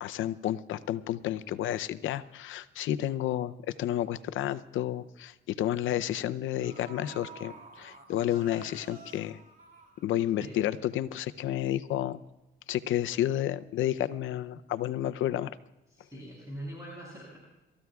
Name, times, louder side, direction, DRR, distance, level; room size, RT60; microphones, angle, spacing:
voice 1, 0.0-9.4 10.0-12.2 12.7-15.5, left 12 dB, 80° left, 14 dB, 0.7 m, -31 dB
sound 1, 6.6-10.5 10.9-11.0, right 4 dB, 45° right, 2.2 m, -50 dB
voice 2, 15.9-17.4, right 1 dB, 15° right, -4 dB, 6.0 m, -43 dB
28.5 x 14.0 x 2.4 m, 0.98 s
cardioid pair, 90°, 20 cm